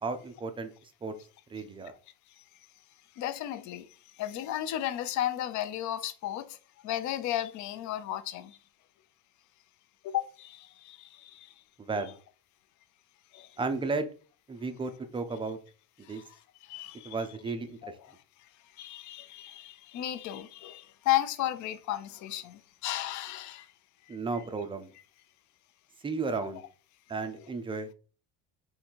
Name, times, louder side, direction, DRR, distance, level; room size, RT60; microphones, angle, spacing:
voice 1, 0.0-0.7 1.0-1.1 1.5-1.9 11.8-12.2 13.6-14.1 14.5-15.6 16.0-16.2 17.0-17.9 24.1-24.9 26.0-26.6 27.1-27.9, right 4 dB, 15° right, 0.4 m, -33 dB
voice 2, 3.2-6.6 6.8-8.6 10.0-11.5 11.9-12.1 13.3-13.6 16.0-17.2 17.8-18.2 18.7-23.7 24.1-24.2, left 13 dB, 45° left, 0.5 m, -34 dB
3.8 x 2.7 x 4.4 m
cardioid pair, 140°, 39 cm